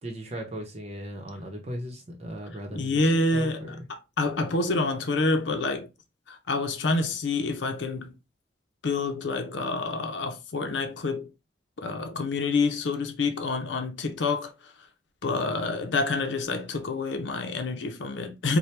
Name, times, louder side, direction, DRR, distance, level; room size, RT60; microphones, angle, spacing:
voice 1, 0.0-3.9 15.3-15.6, equal, 35° right, 0.8 m, -38 dB
voice 2, 2.7-3.7 4.2-5.9 6.3-8.1 8.8-11.3 11.8-14.7 15.2-18.6, left 3 dB, 80° left, 0.6 m, -27 dB
4.3 x 2.2 x 3.2 m
head